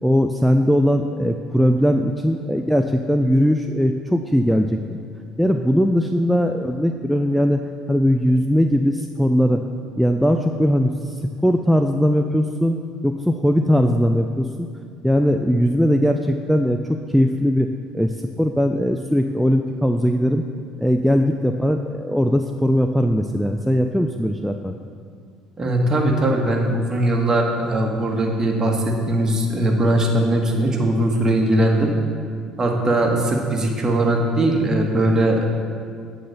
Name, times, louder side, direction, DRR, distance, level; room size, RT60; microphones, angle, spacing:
voice 1, 0.0-4.8 5.4-7.6 7.9-9.6 10.0-11.1 11.4-12.8 13.0-14.7 15.0-20.4 20.8-24.7, equal, ahead, 5 dB, 0.4 m, -19 dB
voice 2, 25.6-31.9 32.6-35.5, right 1 dB, 30° right, 1 dB, 1.3 m, -20 dB
8.6 x 3.9 x 6.5 m, 2.2 s
supercardioid pair, 80°, 2 cm